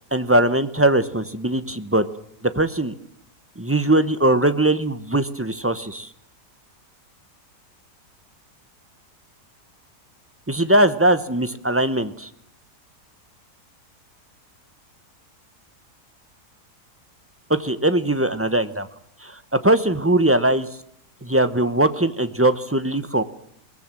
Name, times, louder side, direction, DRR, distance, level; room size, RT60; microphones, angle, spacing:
voice 1, 0.1-2.0 2.5-2.9 3.6-6.1 10.5-12.3 17.5-18.9 19.2-20.7 21.2-23.2, right 1 dB, 10° right, 12 dB, 0.7 m, -20 dB
22.0 x 19.0 x 7.5 m, 0.69 s
omnidirectional pair, 1.7 m